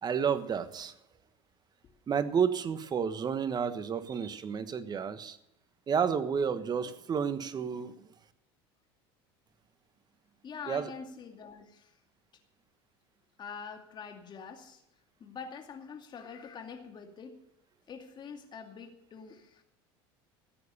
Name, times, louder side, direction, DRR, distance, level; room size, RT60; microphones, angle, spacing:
voice 1, 0.0-0.9 2.1-5.4 5.9-8.1 10.7-10.9, right 7 dB, 35° right, 12 dB, 1.3 m, -31 dB
voice 2, 10.4-12.0 13.4-14.8 15.2-17.4 17.9-19.6, left 6 dB, 35° left, 4 dB, 2.4 m, -45 dB
14.5 x 9.6 x 6.8 m, 0.83 s
supercardioid pair, 95°, 13 cm